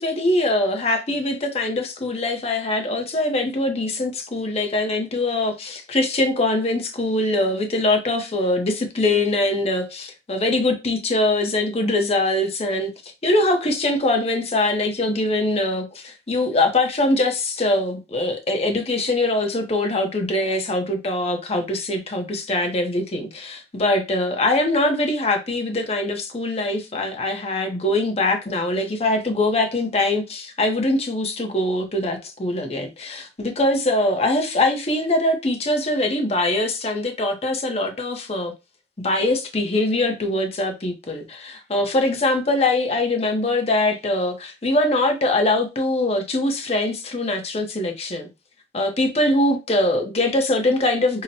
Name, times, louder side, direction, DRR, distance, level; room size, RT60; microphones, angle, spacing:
voice 1, 0.0-38.5 39.0-48.3 48.7-51.2, left 2 dB, 35° left, 0.7 m, -22 dB
5.6 x 2.1 x 2.7 m
head